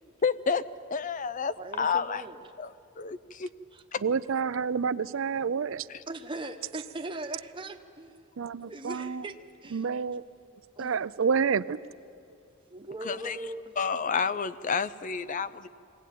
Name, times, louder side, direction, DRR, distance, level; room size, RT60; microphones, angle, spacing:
voice 1, 0.2-2.2 2.6-3.5 3.9-4.0 5.9-6.0 13.0-13.4 13.8-15.7, left 5 dB, 35° left, 14 dB, 0.5 m, -30 dB
voice 2, 1.6-2.5 3.7-3.8 6.1-8.2 8.7-9.9 10.8-10.9 12.7-13.7, right 2 dB, 25° right, 5 dB, 1.0 m, -40 dB
voice 3, 4.0-5.9 8.4-9.2 9.7-10.2 10.8-11.8, right 6 dB, 65° right, 17 dB, 0.5 m, -28 dB
22.0 x 18.0 x 9.2 m, 2.5 s
head